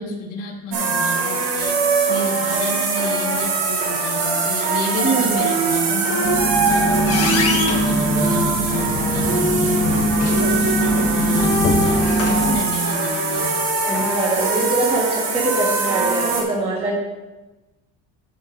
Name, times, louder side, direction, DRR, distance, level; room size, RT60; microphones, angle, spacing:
voice 1, 0.0-1.7 2.1-10.0 10.3-13.5, left 1 dB, 65° left, -3 dB, 2.8 m, -30 dB
sound 1, 0.7-16.4, right 3 dB, 75° right, 2.0 m, -22 dB
voice 2, 5.0-5.3 10.4-10.5 13.8-16.9, right 2 dB, 15° right, -5 dB, 1.6 m, -23 dB
sound 2, 6.0-12.5, equal, 40° left, 1.4 m, -21 dB
13.5 x 6.9 x 2.6 m, 1.1 s
cardioid pair, 150°, 35 cm